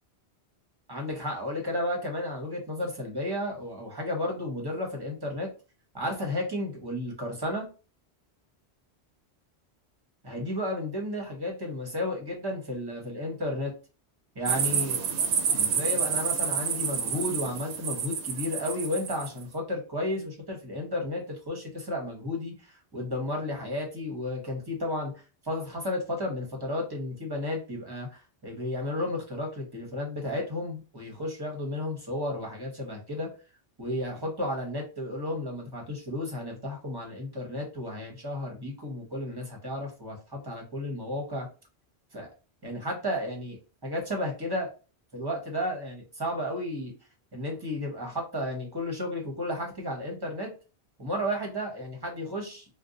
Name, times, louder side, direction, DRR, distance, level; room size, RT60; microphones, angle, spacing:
voice 1, 0.9-5.5 5.9-7.6 10.2-13.7 14.3-15.1 15.5-25.1 25.4-33.3 33.8-41.5 42.1-42.3 42.6-43.6 43.8-44.7 45.1-46.9 47.3-50.5 51.0-52.7, left 1 dB, 25° right, 1 dB, 0.9 m, -33 dB
sound 1, 14.5-19.3, right 7 dB, 80° right, 0.9 m, -28 dB
2.6 x 2.2 x 3.7 m, 0.33 s
omnidirectional pair, 1.1 m